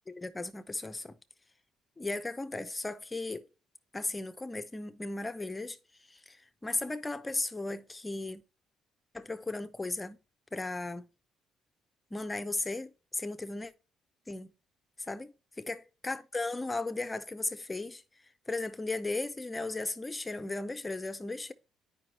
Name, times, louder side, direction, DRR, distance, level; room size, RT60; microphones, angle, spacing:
voice 1, 0.1-1.2 2.0-3.5 3.9-5.8 6.1-8.4 9.1-10.2 10.5-11.1 12.1-13.7 14.3-14.5 15.0-15.3 15.7-15.8 16.0-18.0 18.5-21.5, left 2 dB, 15° left, 0.5 m, -36 dB
9.2 x 5.2 x 2.9 m
cardioid pair, 120°, 0 cm